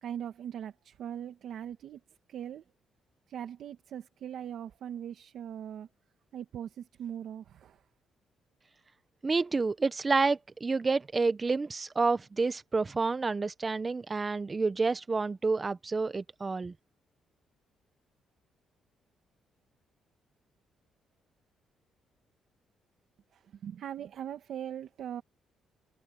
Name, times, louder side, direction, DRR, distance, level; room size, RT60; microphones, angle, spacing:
voice 1, 0.0-2.0 2.3-2.6 3.3-5.9 6.3-7.9 23.3-25.2, right 9 dB, 70° right, 2.2 m, -40 dB
voice 2, 9.2-16.7, right 4 dB, 30° right, 1.2 m, -29 dB
cardioid pair, 90°, 0 cm